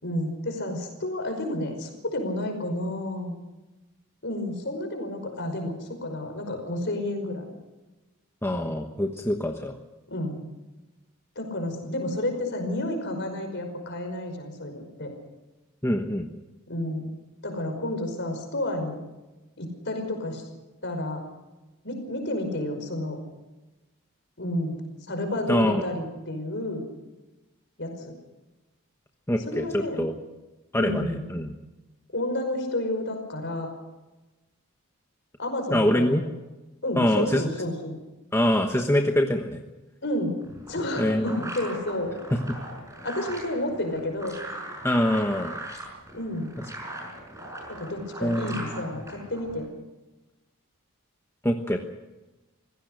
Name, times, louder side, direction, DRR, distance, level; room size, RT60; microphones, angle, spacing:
voice 1, 0.0-3.4 4.2-7.4 10.1-10.4 11.4-15.1 16.7-17.1 17.4-19.0 19.6-20.4 20.8-21.2 21.8-23.2 24.4-24.8 25.1-26.9 27.8-28.1 29.5-30.0 30.8-31.3 32.1-33.7 35.4-36.3 36.8-38.0 40.0-40.3 40.7-42.1 43.0-44.3 46.1-46.5 47.7-49.7, left 1 dB, 50° left, 5 dB, 5.3 m, -30 dB
voice 2, 8.4-9.8 15.8-16.3 25.5-25.8 29.3-30.1 30.7-31.5 35.7-36.2 37.0-37.4 38.3-39.6 41.0-41.4 42.3-42.6 44.8-45.5 48.2-48.9 51.4-51.8, left 1 dB, 10° left, 4 dB, 1.1 m, -24 dB
sound 1, 40.4-49.7, right 1 dB, 15° right, 5.8 m, -40 dB
25.5 x 16.5 x 6.5 m, 1.1 s
head